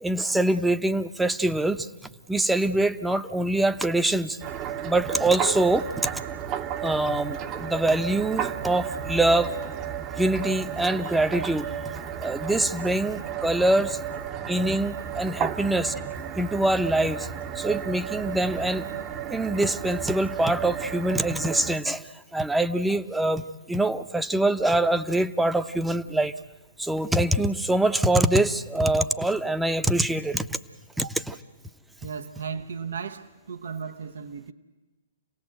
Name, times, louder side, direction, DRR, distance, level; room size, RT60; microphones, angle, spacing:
voice 1, 0.0-1.9 2.3-4.4 4.8-6.2 6.8-9.5 10.2-11.7 12.2-14.0 14.5-15.9 16.4-17.3 17.5-18.9 19.3-26.3 26.8-30.6 31.0-31.3, right 1 dB, 5° right, 0.9 m, -24 dB
sound 1, 4.4-21.8, right 8 dB, 30° right, 1.0 m, -33 dB
voice 2, 32.0-34.5, right 6 dB, 70° right, 1.1 m, -35 dB
28.0 x 18.0 x 7.9 m
hypercardioid pair, 125°, 0 cm